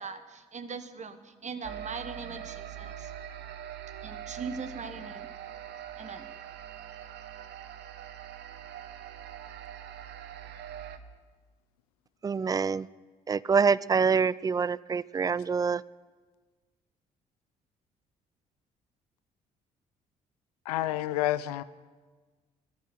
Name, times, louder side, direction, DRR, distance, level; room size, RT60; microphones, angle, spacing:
voice 1, 0.0-3.1 4.0-5.3 6.0-6.4, right 5 dB, 40° right, 1.2 m, -40 dB
sound 1, 1.6-11.0, right 10 dB, 65° right, 0.8 m, -43 dB
voice 2, 12.2-12.9 13.3-15.8, right 5 dB, 20° right, 0.3 m, -26 dB
voice 3, 20.7-21.6, left 14 dB, 90° left, 0.4 m, -29 dB
13.5 x 10.5 x 6.3 m
hypercardioid pair, 50°, 19 cm